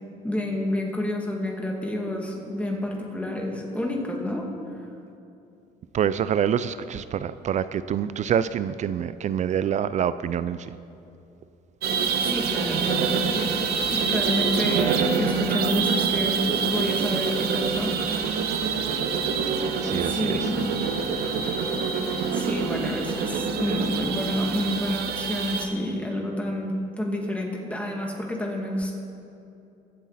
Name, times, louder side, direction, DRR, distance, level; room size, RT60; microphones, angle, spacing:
voice 1, 0.2-4.5 12.0-18.0 20.1-20.8 22.3-28.9, left 1 dB, 10° left, -1 dB, 2.4 m, -29 dB
voice 2, 5.9-10.7 19.8-20.5 23.7-23.8, right 9 dB, 45° right, 14 dB, 0.4 m, -26 dB
sound 1, 11.8-25.7, right 6 dB, 70° right, 1.1 m, -26 dB
22.5 x 8.0 x 4.2 m, 2.7 s
cardioid pair, 110°, 17 cm